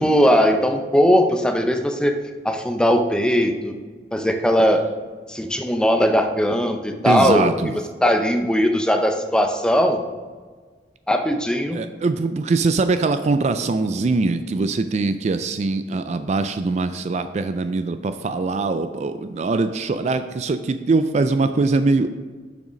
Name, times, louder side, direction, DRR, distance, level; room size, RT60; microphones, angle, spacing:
voice 1, 0.0-2.2 2.4-3.7 4.1-4.8 5.3-7.7 8.0-10.0 11.1-11.8, equal, 5° left, 5 dB, 0.6 m, -19 dB
voice 2, 7.1-7.7 11.7-22.2, right 3 dB, 40° right, 10 dB, 0.3 m, -22 dB
6.9 x 6.4 x 5.1 m, 1.4 s
head